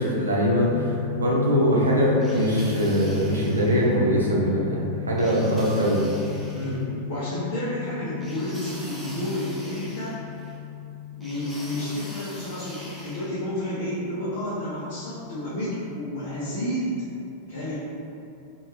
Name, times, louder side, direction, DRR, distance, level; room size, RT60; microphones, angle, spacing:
voice 1, 0.0-4.8 5.1-6.0, equal, 75° right, -4 dB, 0.6 m, -22 dB
sound 1, 0.6-16.2, left 11 dB, 25° right, 1.2 m, -36 dB
sound 2, 2.2-3.9 5.2-6.8 8.2-10.5 11.2-13.3, equal, ahead, 0.7 m, -44 dB
voice 2, 6.5-10.2 11.2-16.9 17.5-17.8, left 1 dB, 55° left, -11 dB, 0.9 m, -31 dB
3.2 x 2.6 x 3.0 m, 2.6 s
figure-of-eight pair, 90°, 0 cm